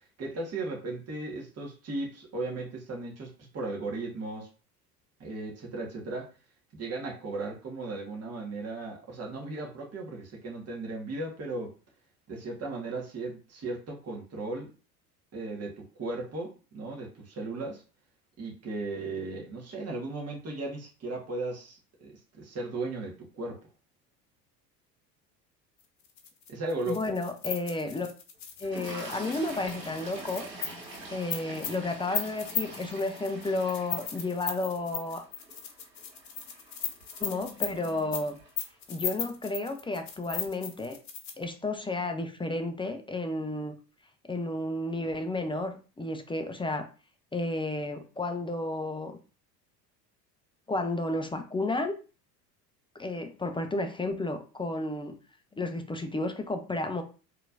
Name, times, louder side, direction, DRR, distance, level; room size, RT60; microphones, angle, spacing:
voice 1, 0.2-4.5 5.2-6.3 6.7-11.7 12.3-14.7 15.3-17.8 18.4-23.6 26.5-27.1, right 2 dB, 30° right, -1 dB, 1.6 m, -36 dB
sound 1, 26.1-41.4, left 7 dB, 35° left, 1.2 m, -37 dB
voice 2, 26.9-28.1 28.6-30.5 31.1-35.2 37.2-38.4 38.9-41.0 41.4-43.8 44.3-46.9 47.3-49.2 50.7-51.9 52.9-55.2 55.5-57.0, left 2 dB, 10° left, 6 dB, 0.5 m, -32 dB
Toilet flush, 28.6-38.9 39.8-40.0 40.3-40.5, right 2 dB, 90° right, 1.8 m, -45 dB
4.4 x 3.3 x 2.6 m, 0.35 s
hypercardioid pair, 75°, 49 cm